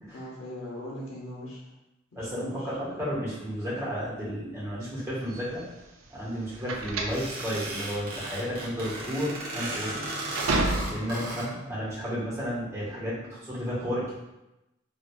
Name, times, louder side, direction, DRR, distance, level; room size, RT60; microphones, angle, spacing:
voice 1, 0.1-1.6 2.1-3.0 11.0-11.7, left 1 dB, 85° left, -4 dB, 1.0 m, -40 dB
voice 2, 2.1-5.6 6.1-10.1 10.8-14.2, equal, 15° right, -8 dB, 1.2 m, -32 dB
sound 1, 5.3-11.3, right 2 dB, 85° right, 0.5 m, -32 dB
sound 2, 7.1-11.5, right 2 dB, 45° right, 0.9 m, -35 dB
4.8 x 2.6 x 2.3 m, 0.96 s
head